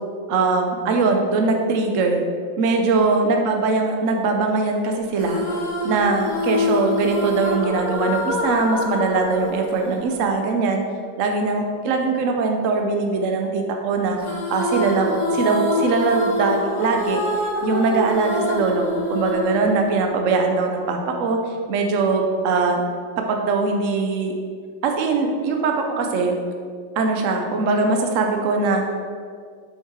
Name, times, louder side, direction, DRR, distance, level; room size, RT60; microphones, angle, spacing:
voice 1, 0.3-2.2 2.6-5.4 5.8-10.8 11.2-14.2 14.5-17.3 17.6-22.8 23.2-24.3 24.8-26.4 27.0-28.8, right 3 dB, 70° right, 3 dB, 0.7 m, -21 dB
sound 1, 5.2-10.7 14.2-20.6, left 1 dB, 40° left, 0.6 m, -26 dB
7.6 x 5.4 x 4.6 m, 2.2 s
omnidirectional pair, 2.1 m